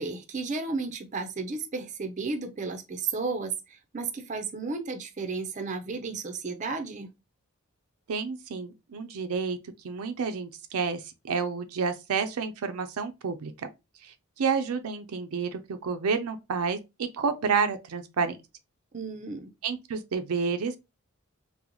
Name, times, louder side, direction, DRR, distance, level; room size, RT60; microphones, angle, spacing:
voice 1, 0.0-3.5 3.9-7.1 18.9-19.5, right 4 dB, 35° right, 0.4 m, -33 dB
voice 2, 8.1-9.6 9.8-11.0 11.3-13.5 14.0-16.8 17.1-18.4 19.6-20.8, right 5 dB, 85° right, 0.5 m, -29 dB
3.9 x 2.0 x 2.9 m
head